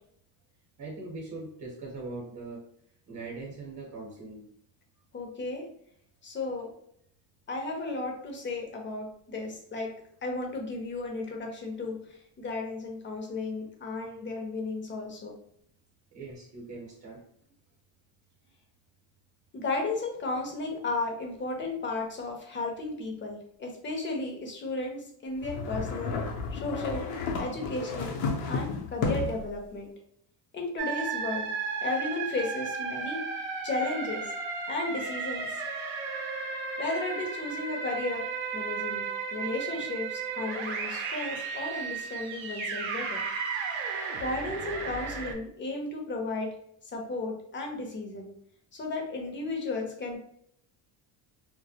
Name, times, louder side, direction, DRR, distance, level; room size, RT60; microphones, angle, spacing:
voice 1, 0.8-2.6 3.1-4.5 16.1-17.2, right 3 dB, 45° right, -3 dB, 0.8 m, -41 dB
voice 2, 5.1-5.6 6.2-6.7 7.5-9.9 10.2-15.3 19.5-26.1 26.5-27.0 27.4-28.1 28.5-29.9 30.5-31.5 31.8-33.2 33.6-34.3 34.7-35.5 36.8-39.1 39.3-43.2 44.2-46.5 46.9-48.3 48.7-50.2, left 2 dB, 25° left, 1 dB, 0.6 m, -34 dB
sound 1, 25.4-29.5, left 4 dB, 75° left, 0.7 m, -32 dB
sound 2, 30.8-45.3, right 5 dB, 75° right, 0.6 m, -34 dB
2.2 x 2.1 x 2.7 m, 0.67 s
cardioid pair, 115°, 46 cm